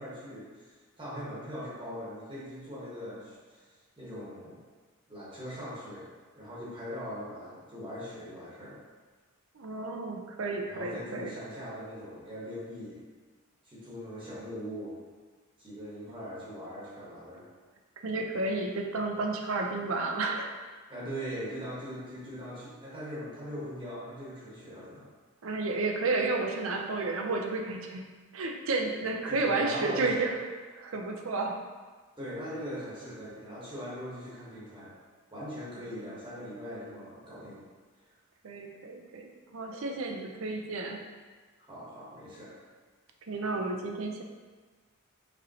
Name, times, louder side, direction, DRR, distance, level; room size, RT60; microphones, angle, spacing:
voice 1, 0.0-3.7 4.0-4.6 5.1-6.1 6.3-8.8 10.7-13.0 13.6-15.0 15.6-17.5 20.9-25.1 29.3-30.1 32.2-34.9 35.3-37.6 41.7-42.5, equal, 25° right, -8 dB, 1.0 m, -41 dB
voice 2, 9.6-11.4 18.0-20.6 25.4-28.0 28.3-30.3 30.8-31.5 35.8-35.9 38.4-41.0 43.3-44.2, right 3 dB, 70° right, 3 dB, 0.5 m, -31 dB
5.2 x 3.1 x 2.7 m, 1.4 s
head